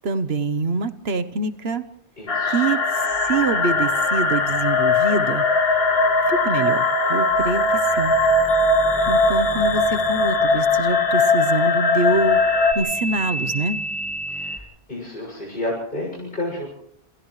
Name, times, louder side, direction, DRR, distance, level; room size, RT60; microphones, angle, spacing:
voice 1, 0.0-1.8 2.5-5.4 6.3-8.1 9.1-12.4 12.7-13.8, right 3 dB, 75° right, 10 dB, 1.4 m, -25 dB
voice 2, 2.2-2.6 14.3-16.7, left 1 dB, 55° left, -4 dB, 7.2 m, -31 dB
sound 1, 2.3-12.7, left 3 dB, 70° left, 2.0 m, -20 dB
sound 2, 2.9-14.6, right 1 dB, ahead, 1.7 m, -34 dB
29.5 x 27.0 x 3.3 m, 0.70 s
omnidirectional pair, 1.1 m